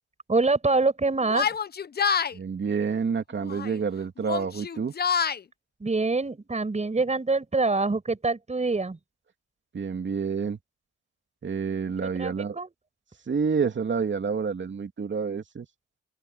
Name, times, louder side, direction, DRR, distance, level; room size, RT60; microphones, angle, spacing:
voice 1, 0.3-1.6 5.8-9.0 12.0-12.7, right 3 dB, 20° right, 6.9 m, -25 dB
Yell, 1.3-2.3 3.4-3.8 4.2-5.4, left 7 dB, 30° left, 0.8 m, -27 dB
voice 2, 2.3-4.9 9.7-10.6 11.4-12.6 13.3-15.7, right 5 dB, 40° right, 3.0 m, -28 dB
open air
cardioid pair, 90°, 30 cm